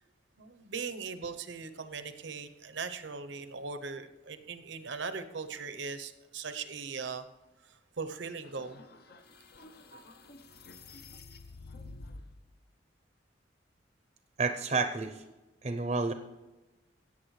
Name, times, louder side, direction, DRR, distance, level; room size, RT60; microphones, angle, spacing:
voice 1, 0.4-7.2 7.7-8.8, right 5 dB, 80° right, 9 dB, 0.8 m, -39 dB
sound 1, 8.4-12.5, left 3 dB, 55° left, 0.7 m, -50 dB
voice 2, 14.4-15.2 15.6-16.1, right 4 dB, 40° right, 7 dB, 0.6 m, -30 dB
16.5 x 8.5 x 3.2 m, 1.1 s
head